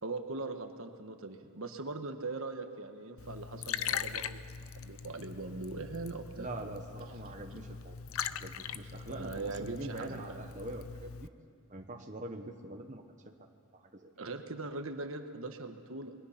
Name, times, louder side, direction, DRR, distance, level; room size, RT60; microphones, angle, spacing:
voice 1, 0.0-4.4 4.8-6.5 9.1-10.4 14.2-16.1, right 3 dB, 65° right, 6 dB, 1.4 m, -40 dB
Liquid, 3.2-11.3, left 7 dB, 65° left, 0.6 m, -41 dB
voice 2, 6.4-8.0 8.3-11.3 11.7-13.0 13.4-14.1, right 2 dB, 35° right, 3 dB, 1.2 m, -44 dB
27.5 x 22.0 x 5.9 m, 2.1 s
head